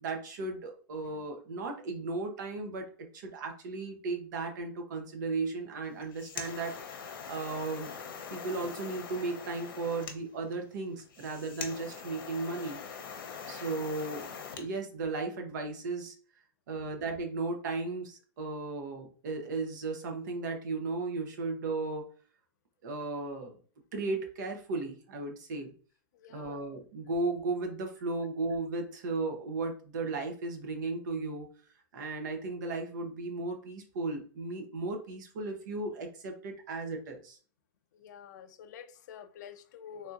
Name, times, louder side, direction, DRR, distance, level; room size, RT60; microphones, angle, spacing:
voice 1, 0.0-7.9 8.3-12.8 13.5-14.2 14.6-16.1 16.7-22.0 22.8-23.5 23.9-25.7 26.3-31.5 31.9-37.4, right 3 dB, 60° right, 0.8 m, -35 dB
sound 1, 5.9-14.7, left 6 dB, 85° left, 0.7 m, -43 dB
voice 2, 26.1-26.6 37.9-40.1, left 8 dB, 55° left, 0.4 m, -48 dB
3.4 x 2.7 x 2.4 m
supercardioid pair, 180°, 11 cm